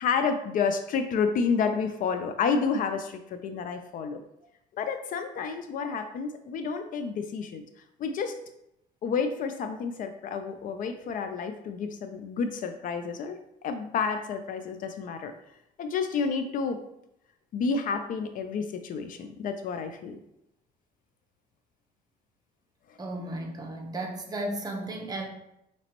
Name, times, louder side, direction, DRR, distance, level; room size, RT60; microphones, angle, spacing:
voice 1, 0.0-4.2 4.7-7.6 8.0-8.3 9.0-15.3 15.8-16.8 17.5-20.2, left 5 dB, 55° left, 8 dB, 0.4 m, -30 dB
voice 2, 23.0-25.3, right 1 dB, 20° right, 2 dB, 0.8 m, -34 dB
5.0 x 3.0 x 2.9 m, 0.82 s
cardioid pair, 110°, 17 cm